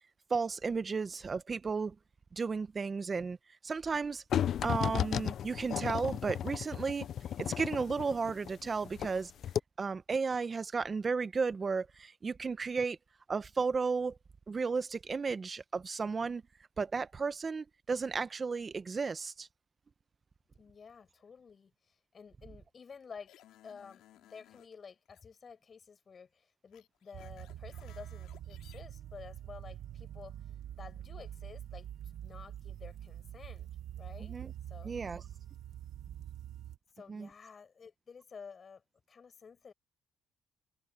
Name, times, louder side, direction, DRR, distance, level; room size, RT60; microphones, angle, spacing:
voice 1, 0.3-1.9 2.4-3.4 3.6-4.2 4.6-7.1 7.4-9.3 9.8-13.0 13.3-14.2 14.5-16.4 16.8-19.5 34.2-34.5 34.8-35.2 37.1-37.3, right 4 dB, 35° right, 1.0 m, -34 dB
sound 1, 4.3-9.2 9.4-9.6, left 9 dB, 65° left, 0.5 m, -34 dB
voice 2, 20.5-23.3 23.6-33.7 34.0-34.4 34.7-35.0 36.9-39.7, left 6 dB, 45° left, 6.3 m, -52 dB
sound 2, 23.3-24.7 25.1-25.2 26.7-28.8, left 13 dB, 80° left, 3.8 m, -60 dB
sound 3, 27.1-36.8, right 11 dB, 70° right, 1.8 m, -45 dB
supercardioid pair, 75°, 0 cm